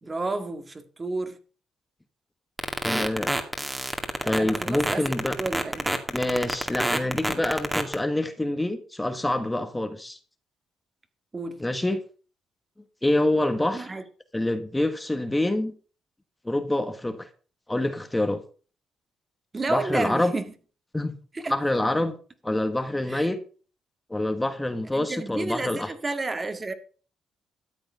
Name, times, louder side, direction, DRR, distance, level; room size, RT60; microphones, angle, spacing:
voice 1, 0.0-1.4 4.2-5.0 5.4-5.9 11.3-11.6 13.7-14.0 19.5-20.4 21.3-21.5 23.1-23.3 24.9-26.7, right 3 dB, 25° right, 1.9 m, -31 dB
sound 1, 2.6-7.9, right 1 dB, 10° right, 2.2 m, -26 dB
voice 2, 2.8-3.3 4.2-5.4 6.1-10.2 11.6-12.0 13.0-13.9 14.3-15.7 16.4-17.3 17.7-18.4 19.7-20.3 20.9-21.1 21.5-22.2 22.4-23.4 24.1-25.9, left 1 dB, 10° left, 1.5 m, -26 dB
13.5 x 7.9 x 5.6 m
cardioid pair, 90°, 0 cm